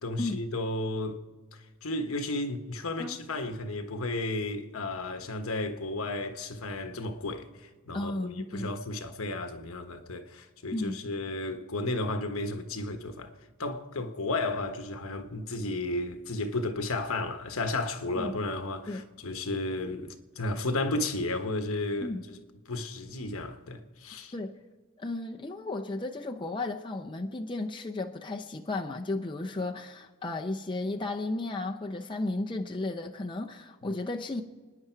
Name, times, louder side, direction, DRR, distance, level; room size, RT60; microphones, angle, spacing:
voice 1, 0.0-1.2 1.5-13.3 13.6-22.4 22.7-24.3, left 2 dB, 70° left, 1.3 m, -33 dB
voice 2, 7.9-8.7 10.7-11.0 18.1-18.3 18.9-19.0 22.0-22.2 24.3-24.5 25.0-34.4, left 2 dB, 20° left, 0.7 m, -34 dB
30.0 x 10.0 x 4.6 m
head